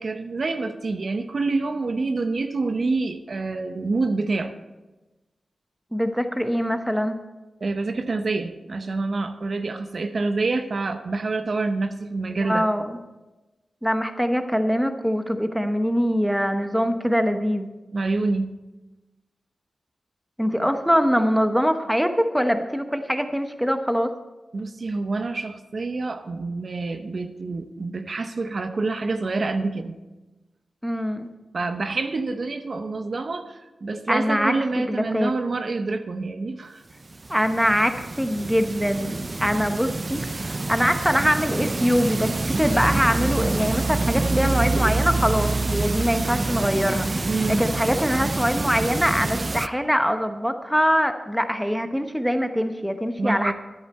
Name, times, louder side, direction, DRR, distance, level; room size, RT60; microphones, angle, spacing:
voice 1, 0.0-4.5 7.6-12.7 17.9-18.6 24.5-30.0 31.5-36.8 47.3-47.7 53.2-53.5, right 3 dB, 60° right, 8 dB, 0.8 m, -27 dB
voice 2, 5.9-7.2 12.4-13.0 13.8-17.7 20.4-24.1 30.8-31.3 34.1-35.3 37.3-53.5, equal, ahead, 7 dB, 1.0 m, -23 dB
sound 1, 36.9-49.7, right 2 dB, 40° right, 0.4 m, -26 dB
13.0 x 10.5 x 4.3 m, 1.1 s
cardioid pair, 60°, 0 cm